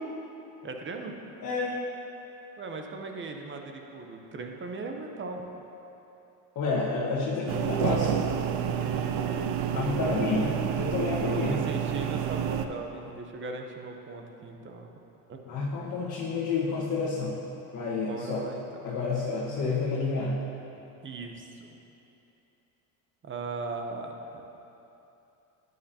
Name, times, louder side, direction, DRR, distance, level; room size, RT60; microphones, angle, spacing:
voice 1, 0.6-1.1 2.6-5.4 8.5-10.4 11.2-14.9 15.3-15.4 18.1-18.8 21.0-21.7 23.2-24.4, right 3 dB, 30° right, 3 dB, 0.9 m, -38 dB
voice 2, 1.4-1.8 6.5-8.2 9.7-11.6 15.4-17.4 17.7-18.5 18.8-20.4, left 4 dB, 45° left, -6 dB, 1.5 m, -29 dB
sound 1, 7.5-12.7, right 9 dB, 65° right, 0.7 m, -29 dB
10.5 x 9.5 x 2.9 m, 2.9 s
supercardioid pair, 95°, 41 cm